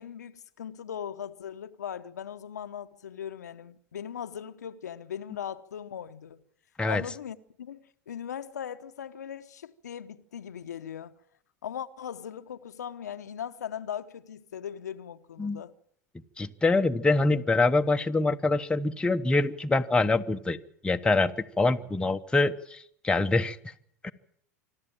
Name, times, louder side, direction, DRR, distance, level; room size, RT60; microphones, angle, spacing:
voice 1, 0.0-6.4 6.9-11.1 11.6-15.7, left 9 dB, 85° left, 0.9 m, -39 dB
voice 2, 16.4-20.6 20.8-23.6 24.0-24.1, left 3 dB, 10° left, 1.1 m, -25 dB
25.5 x 12.5 x 8.8 m
hypercardioid pair, 95°, 9 cm